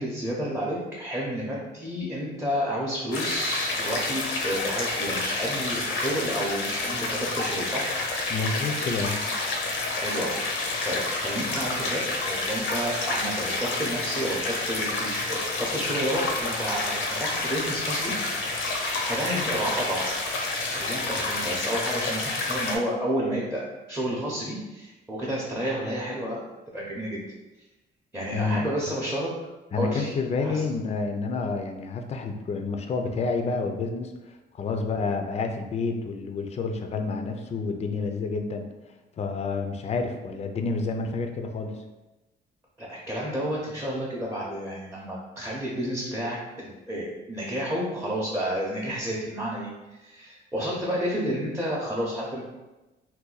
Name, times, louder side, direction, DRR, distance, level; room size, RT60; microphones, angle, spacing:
voice 1, 0.0-7.9 10.0-12.0 12.3-18.1 19.1-20.1 20.7-26.4 26.7-27.2 28.1-29.3 29.8-30.1 30.4-30.6 42.8-52.4, equal, 10° right, -5 dB, 0.7 m, -31 dB
sound 1, 3.1-22.8, left 2 dB, 85° left, 0.6 m, -29 dB
voice 2, 8.3-9.2 28.3-28.6 29.7-38.7 39.2-41.8, left 4 dB, 35° left, 5 dB, 0.4 m, -29 dB
2.6 x 2.2 x 3.9 m, 1.1 s
cardioid pair, 90°, 20 cm